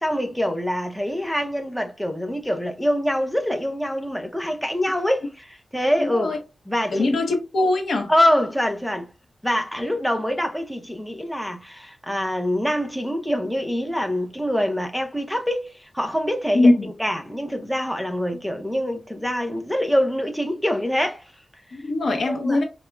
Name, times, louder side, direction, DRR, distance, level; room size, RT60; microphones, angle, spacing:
voice 1, 0.0-6.3 6.7-7.1 8.1-9.1 9.4-16.7 17.0-21.2 22.1-22.6, equal, ahead, 0.7 m, -25 dB
voice 2, 6.0-6.4 6.9-8.1 16.5-16.9 21.7-22.6, left 2 dB, 80° left, 0.7 m, -21 dB
4.6 x 2.1 x 2.3 m
wide cardioid pair, 80°, 0 cm